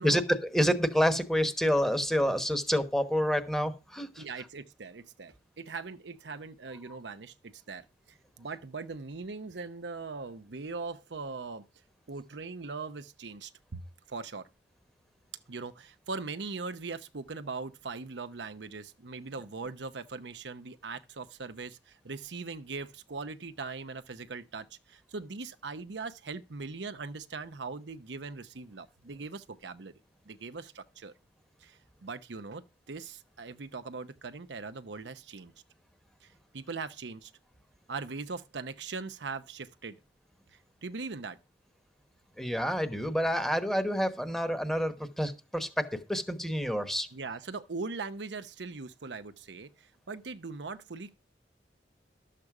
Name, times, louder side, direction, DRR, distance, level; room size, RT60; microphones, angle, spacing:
voice 1, 0.0-4.2 42.4-47.1, equal, ahead, 1.1 m, -28 dB
voice 2, 4.2-11.7 12.1-14.5 15.5-30.0 30.2-31.1 31.6-35.5 36.2-37.3 37.9-40.0 40.8-41.4 47.1-51.1, right 4 dB, 85° right, 0.8 m, -40 dB
12.0 x 7.5 x 4.8 m
head